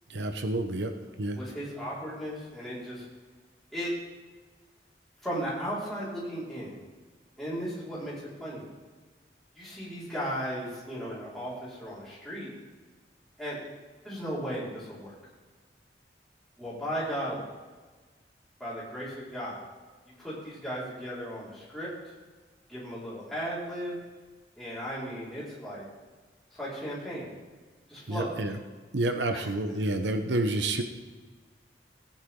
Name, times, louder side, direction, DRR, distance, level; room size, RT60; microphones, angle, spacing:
voice 1, 0.1-0.9 1.2-1.4 28.1-28.6 28.9-30.8, right 2 dB, 90° right, 6 dB, 1.0 m, -29 dB
voice 2, 1.3-3.1 3.7-3.9 5.2-6.8 7.4-8.6 9.5-12.5 13.4-13.6 14.0-15.1 16.6-17.4 18.6-19.6 20.2-21.9 22.7-24.0 24.6-25.8 26.6-27.3 27.9-28.3 29.3-29.5, equal, ahead, -9 dB, 4.9 m, -36 dB
17.5 x 10.0 x 3.8 m, 1.3 s
head